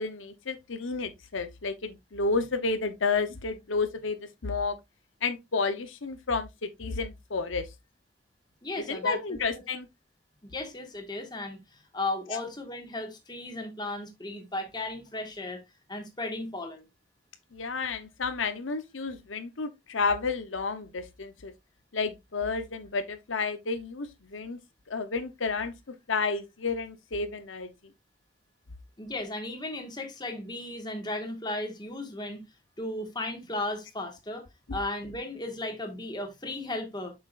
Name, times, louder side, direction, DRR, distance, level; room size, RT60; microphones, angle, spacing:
voice 1, 0.0-4.2 4.4-4.8 5.2-7.7 8.8-9.9 12.3-12.4 17.5-21.5 21.9-24.6 24.9-25.7 26.1-27.7 34.7-34.8, left 4 dB, 85° left, 0.9 m, -31 dB
voice 2, 8.6-9.6 10.5-15.6 15.9-16.8 29.0-32.5 32.8-34.4 34.7-37.1, left 2 dB, 20° left, 1.7 m, -35 dB
7.6 x 6.1 x 2.5 m
head